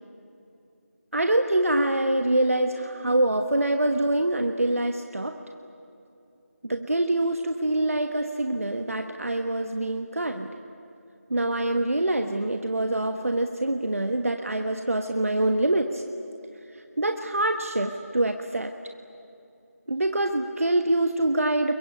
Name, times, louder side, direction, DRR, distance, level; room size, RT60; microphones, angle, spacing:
voice 1, 1.1-5.4 6.6-10.5 11.3-16.0 17.0-18.7 19.9-21.7, right 1 dB, 60° right, 6 dB, 1.4 m, -25 dB
29.0 x 23.0 x 8.6 m, 2.7 s
figure-of-eight pair, 170°, 8 cm